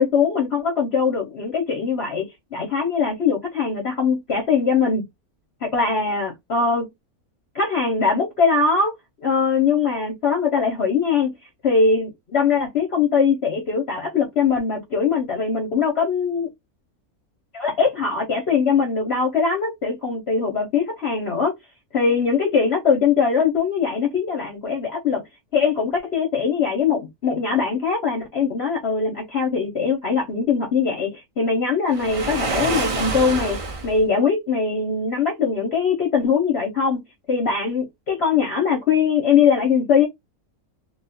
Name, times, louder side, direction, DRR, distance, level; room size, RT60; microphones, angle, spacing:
voice 1, 0.0-5.0 5.6-6.9 7.5-8.9 9.2-11.3 11.6-16.5 17.5-21.5 21.9-25.2 25.5-33.6 33.8-37.0 37.3-40.1, left 5 dB, 50° left, 1.0 m, -21 dB
Waves surf, 31.9-34.0, right 4 dB, 60° right, 0.3 m, -26 dB
2.6 x 2.4 x 4.1 m
omnidirectional pair, 1.6 m